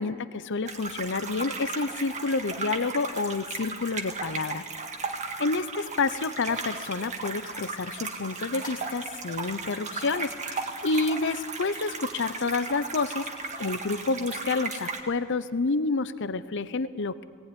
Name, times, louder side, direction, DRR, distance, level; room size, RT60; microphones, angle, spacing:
voice 1, 0.0-4.6 5.4-13.3 13.6-17.2, left 3 dB, 55° left, 14 dB, 0.7 m, -29 dB
sound 1, 0.7-15.0, right 4 dB, 30° right, 1.7 m, -36 dB
sound 2, 6.1-14.6, left 4 dB, 35° left, 2.4 m, -52 dB
19.0 x 18.0 x 9.8 m, 2.1 s
head